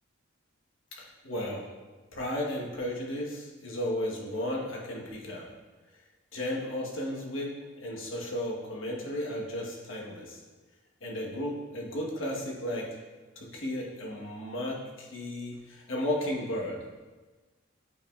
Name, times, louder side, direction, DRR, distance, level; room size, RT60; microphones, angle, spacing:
voice 1, 1.0-1.7 2.1-5.5 6.3-10.4 11.0-12.9 13.4-16.8, left 1 dB, 80° left, -2 dB, 1.2 m, -34 dB
8.5 x 5.2 x 2.4 m, 1.3 s
head